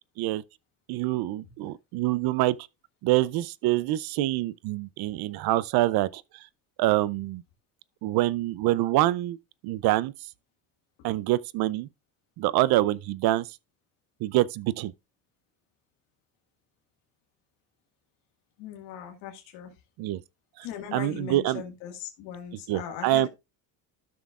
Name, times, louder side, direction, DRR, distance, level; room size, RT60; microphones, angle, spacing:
voice 1, 0.9-2.6 3.0-6.2 6.8-7.4 8.0-9.4 9.6-10.1 11.0-11.9 12.4-13.5 14.2-14.9 20.0-20.2 20.6-20.7 20.9-21.6 22.7-23.3, right 16 dB, 60° right, 0.5 m, -25 dB
voice 2, 18.6-19.7 20.6-23.3, left 8 dB, 85° left, 1.8 m, -39 dB
13.0 x 6.1 x 2.4 m
cardioid pair, 135°, 43 cm